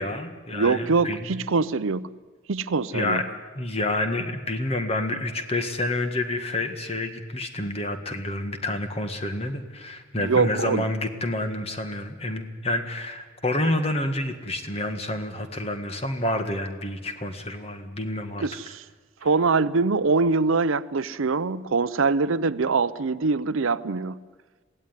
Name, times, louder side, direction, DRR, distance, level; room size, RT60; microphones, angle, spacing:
voice 1, 0.0-1.4 2.9-3.2 3.5-18.5, left 1 dB, 30° left, 1.7 m, -28 dB
voice 2, 0.5-2.1 2.5-3.3 10.2-10.9 18.4-18.8 19.2-24.2, right 4 dB, 80° right, 0.7 m, -23 dB
22.5 x 16.5 x 9.6 m
head